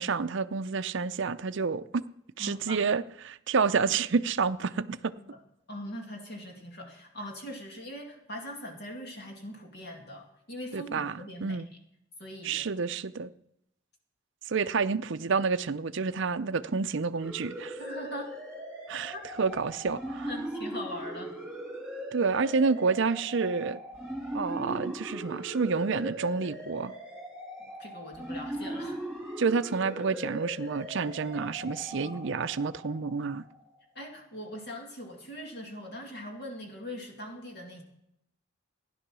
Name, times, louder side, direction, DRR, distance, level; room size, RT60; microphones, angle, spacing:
voice 1, 0.0-2.0 2.4-5.1 10.7-11.7 12.4-13.3 14.5-17.8 18.9-20.3 22.1-23.8 24.3-26.9 29.4-33.4, right 5 dB, 60° right, 0.6 m, -29 dB
voice 2, 2.4-2.8 5.2-5.4 5.7-11.6 12.2-12.6 17.8-18.3 19.1-19.2 19.5-19.6 20.2-21.4 27.6-29.0 31.9-32.2 33.9-37.8, equal, 55° left, 2.3 m, -41 dB
sound 1, 17.2-33.6, right 1 dB, ahead, 2.7 m, -40 dB
15.5 x 10.5 x 6.2 m
head